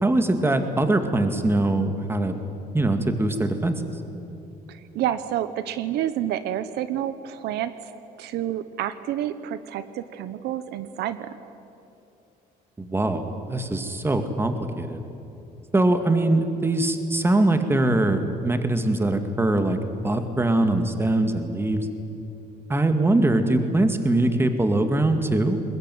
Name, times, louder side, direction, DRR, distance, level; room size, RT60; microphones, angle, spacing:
voice 1, 0.0-2.4 2.7-3.8 12.8-15.0 15.7-19.8 20.0-21.9 22.7-25.6, right 2 dB, 15° right, 7 dB, 2.1 m, -22 dB
voice 2, 4.7-7.7 8.2-11.3, right 11 dB, 80° right, 12 dB, 1.0 m, -29 dB
21.5 x 20.5 x 9.4 m, 2.8 s
cardioid pair, 110°, 17 cm